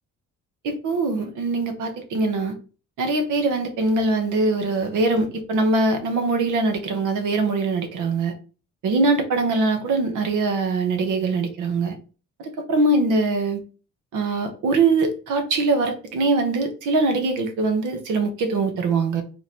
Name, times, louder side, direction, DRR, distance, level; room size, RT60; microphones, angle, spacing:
voice 1, 0.6-2.6 3.0-8.3 8.8-12.0 12.4-13.6 14.1-19.2, right 3 dB, 85° right, 1.1 m, -22 dB
3.5 x 2.9 x 4.2 m
cardioid pair, 90°, 30 cm